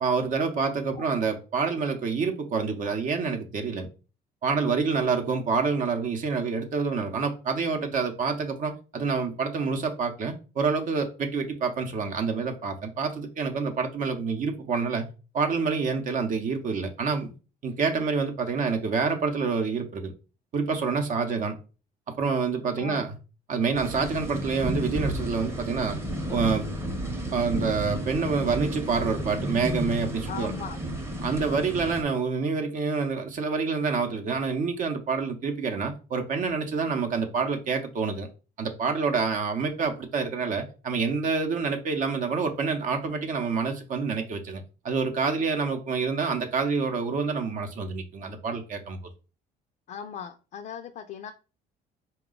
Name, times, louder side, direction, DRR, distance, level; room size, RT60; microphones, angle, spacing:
voice 1, 0.0-3.9 4.4-15.0 15.3-17.3 17.6-20.1 20.5-21.5 22.2-23.1 23.5-26.0 26.3-26.6 27.3-30.5 31.2-38.3 38.6-49.0, right 5 dB, 50° right, 0.8 m, -27 dB
voice 2, 22.8-23.1 30.3-30.8 49.9-51.3, left 7 dB, 50° left, 0.4 m, -38 dB
sound 1, 23.7-32.0, right 1 dB, 15° right, 0.8 m, -32 dB
4.0 x 2.3 x 3.7 m
cardioid pair, 110°, 17 cm